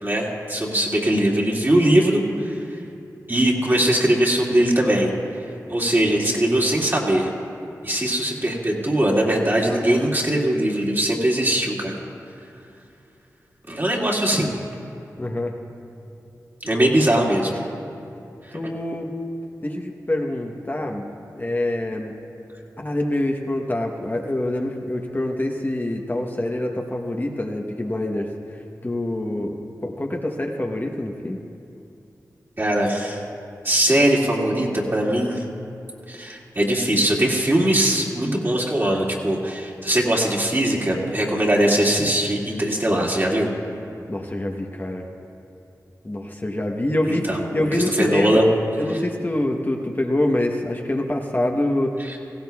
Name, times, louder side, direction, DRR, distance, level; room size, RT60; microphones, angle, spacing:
voice 1, 0.0-2.5 3.3-5.1 5.7-7.3 7.8-12.0 13.7-14.5 16.6-17.6 32.6-33.2 33.6-35.4 36.1-43.5 47.1-47.4 47.7-48.5 52.0-52.2, right 1 dB, 35° right, -3 dB, 2.3 m, -21 dB
voice 2, 15.2-15.6 18.5-19.1 19.6-21.1 21.4-22.1 22.8-29.6 29.8-31.4 44.1-45.1 46.0-48.4 48.8-52.2, left 1 dB, 30° left, 1 dB, 1.0 m, -25 dB
18.0 x 16.0 x 2.4 m, 2.7 s
cardioid pair, 45°, 6 cm